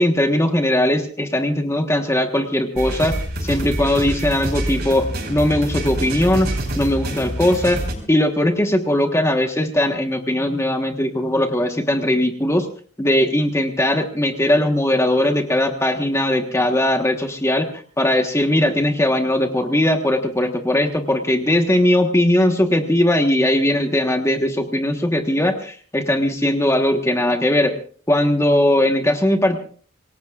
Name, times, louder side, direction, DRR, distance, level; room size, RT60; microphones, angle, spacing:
voice 1, 0.0-6.5 6.7-7.8 8.1-12.7 13.0-27.7 28.1-29.6, left 1 dB, 15° left, 4 dB, 1.3 m, -19 dB
sound 1, 2.8-7.9, right 1 dB, 50° right, 5.1 m, -26 dB
26.0 x 19.5 x 2.5 m, 0.44 s
head